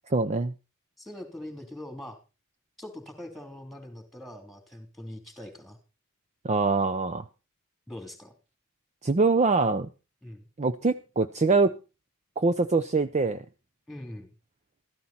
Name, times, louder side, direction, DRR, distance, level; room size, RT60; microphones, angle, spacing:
voice 1, 0.1-0.5 6.4-7.2 9.0-9.9 10.6-11.7 12.4-13.4, right 3 dB, 30° right, 12 dB, 0.6 m, -24 dB
voice 2, 1.0-2.2 2.8-5.8 7.9-8.3 10.2-10.5 13.9-14.3, left 1 dB, ahead, 6 dB, 3.2 m, -42 dB
14.0 x 13.5 x 4.3 m, 0.32 s
head